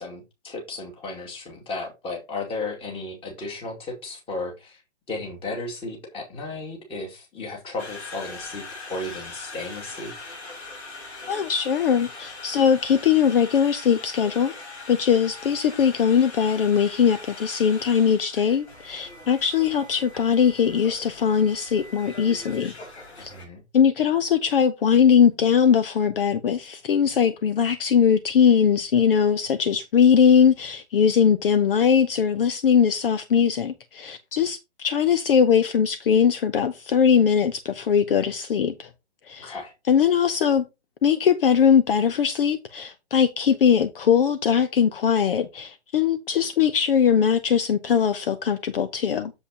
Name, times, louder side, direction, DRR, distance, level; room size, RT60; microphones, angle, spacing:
voice 1, 0.0-4.8 5.1-10.1 23.2-23.6 39.4-39.7, left 2 dB, 15° left, 2.4 m, -34 dB
Conversation, 7.8-23.5, left 3 dB, 70° left, 4.3 m, -41 dB
voice 2, 11.2-14.5 14.9-22.7 23.2-23.3 23.7-38.9 39.3-39.6 39.9-40.6 41.0-49.3, left 7 dB, 50° left, 0.9 m, -20 dB
8.1 x 7.3 x 2.9 m
figure-of-eight pair, 130°, 35 cm